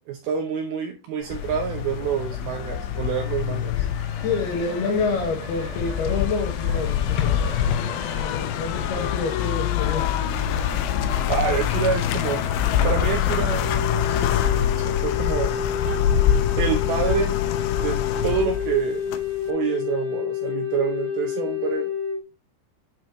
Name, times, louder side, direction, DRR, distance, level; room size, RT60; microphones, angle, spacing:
voice 1, 0.0-3.8 11.3-12.5 12.8-13.7 14.0-15.5 16.6-17.4 17.8-19.1 19.5-21.9, right 8 dB, 75° right, 2.3 m, -27 dB
Fixed-wing aircraft airplane, 1.2-16.5, equal, 15° left, 2.4 m, -41 dB
sound 1, 1.3-19.5, left 10 dB, 90° left, 2.1 m, -25 dB
voice 2, 4.2-7.9 8.2-10.1, left 4 dB, 65° left, 3.2 m, -28 dB
Wind instrument woodwind instrument, 13.6-22.2, left 8 dB, 25° right, 2.4 m, -29 dB
9.2 x 4.5 x 3.0 m
omnidirectional pair, 5.2 m